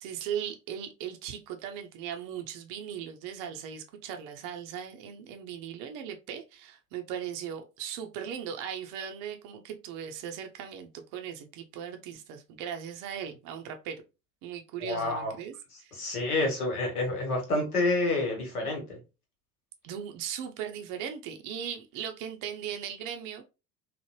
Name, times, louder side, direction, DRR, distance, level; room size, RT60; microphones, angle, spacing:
voice 1, 0.0-14.0 14.4-15.9 19.8-23.4, right 8 dB, 45° right, 0.5 m, -38 dB
voice 2, 14.8-15.3 15.9-19.0, left 2 dB, 80° left, 1.2 m, -28 dB
3.2 x 2.0 x 2.9 m
figure-of-eight pair, 70°, 45 cm